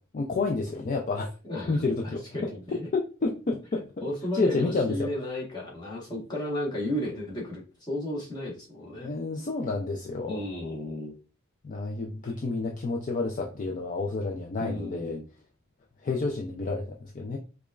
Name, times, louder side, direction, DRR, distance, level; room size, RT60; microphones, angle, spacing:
voice 1, 0.1-1.3 1.7-2.2 2.9-3.8 4.3-5.1 9.0-10.4 11.6-15.2 16.0-17.4, left 3 dB, 40° left, 1 dB, 0.4 m, -29 dB
voice 2, 1.4-2.9 4.0-9.1 10.3-11.1 14.6-15.3, left 1 dB, 20° left, -4 dB, 1.2 m, -34 dB
4.9 x 2.3 x 2.3 m, 0.35 s
head